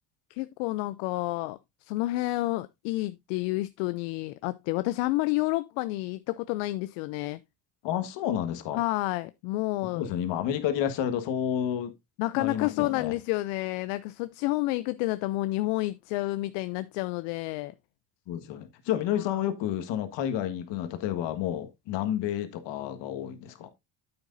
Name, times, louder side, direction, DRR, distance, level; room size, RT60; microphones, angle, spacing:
voice 1, 0.3-7.4 8.7-10.1 12.2-17.7 19.1-19.2, left 19 dB, 90° left, 0.5 m, -30 dB
voice 2, 7.8-8.8 9.9-11.9 12.3-13.1 18.3-23.7, left 10 dB, 75° left, 1.6 m, -30 dB
9.4 x 7.9 x 2.6 m
supercardioid pair, 85°, 44 cm